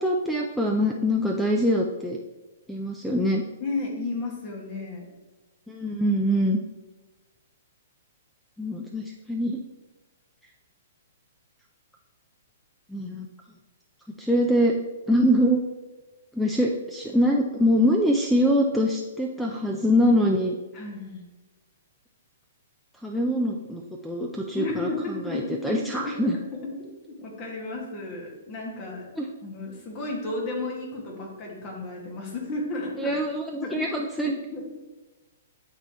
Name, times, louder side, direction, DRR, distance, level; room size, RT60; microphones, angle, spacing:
voice 1, 0.0-2.2 2.7-3.4 5.7-6.6 8.6-9.6 12.9-13.3 14.2-14.7 15.1-15.6 16.3-20.6 23.0-26.4 29.2-29.3 33.0-34.4, equal, ahead, 1 dB, 0.5 m, -24 dB
voice 2, 3.6-5.1 20.7-21.2 24.6-26.7 27.0-29.1 29.4-33.2 33.6-33.9 34.2-34.7, left 2 dB, 35° left, -1 dB, 2.0 m, -33 dB
11.5 x 4.0 x 3.1 m, 1.1 s
hypercardioid pair, 120°, 0 cm